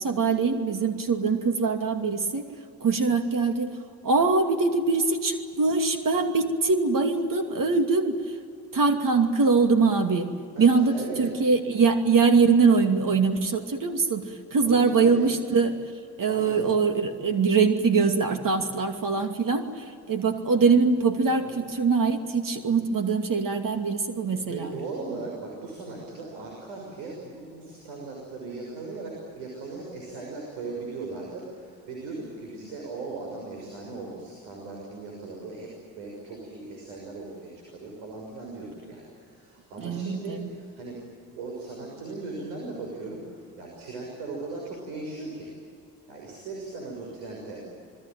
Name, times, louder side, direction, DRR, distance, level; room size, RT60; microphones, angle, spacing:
voice 1, 0.0-2.5 2.8-3.7 4.0-8.2 8.7-10.3 10.6-14.2 14.5-15.8 16.2-24.7 39.8-40.5, right 4 dB, 45° right, 6 dB, 2.6 m, -23 dB
voice 2, 10.5-11.3 14.6-15.3 16.3-16.6 18.5-18.8 20.2-20.3 21.4-21.6 24.5-35.7 36.0-41.0 41.4-45.5 46.1-47.6, right 3 dB, 75° right, -1 dB, 6.3 m, -38 dB
27.5 x 21.0 x 9.1 m, 2.3 s
hypercardioid pair, 55°, 47 cm